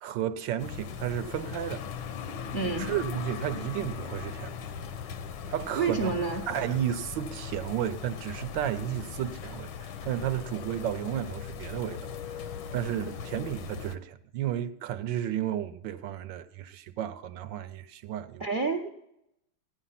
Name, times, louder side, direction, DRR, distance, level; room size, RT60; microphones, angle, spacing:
voice 1, 0.0-1.8 2.6-4.6 5.5-6.1 6.5-12.1 12.7-18.5, right 11 dB, 70° right, 1.2 m, -33 dB
sound 1, 0.6-14.0, left 7 dB, 75° left, 1.6 m, -39 dB
voice 2, 2.5-2.9 5.8-6.4 18.4-18.9, right 4 dB, 55° right, 0.5 m, -28 dB
15.5 x 10.0 x 5.7 m
omnidirectional pair, 2.3 m